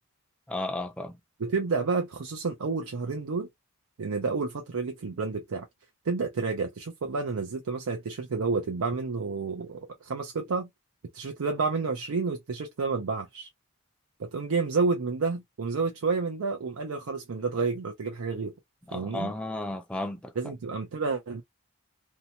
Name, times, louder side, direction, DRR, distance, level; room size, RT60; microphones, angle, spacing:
voice 1, 0.5-1.2 18.9-20.3, left 1 dB, 5° left, 0.4 m, -33 dB
voice 2, 1.4-3.5 4.0-5.7 6.0-10.7 11.1-13.5 14.2-18.5 18.9-19.3 20.4-21.4, right 4 dB, 85° right, 0.5 m, -30 dB
2.7 x 2.2 x 2.8 m
head